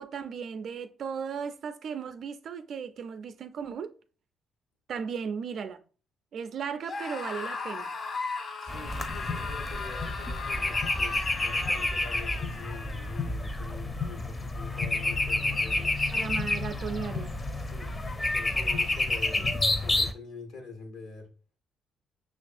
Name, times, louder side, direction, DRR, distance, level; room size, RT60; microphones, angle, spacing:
voice 1, 0.0-3.9 4.9-5.8 6.3-7.9 16.1-17.3 19.4-19.5, right 6 dB, 60° right, 0.4 m, -36 dB
Screaming, 6.8-13.3, left 4 dB, 45° left, 1.0 m, -37 dB
voice 2, 8.6-16.0 17.6-17.9 18.3-21.3, left 3 dB, 75° left, 1.1 m, -45 dB
sound 1, 8.7-20.1, left 2 dB, 25° left, 0.6 m, -29 dB
5.7 x 2.4 x 2.5 m
hypercardioid pair, 50°, 0 cm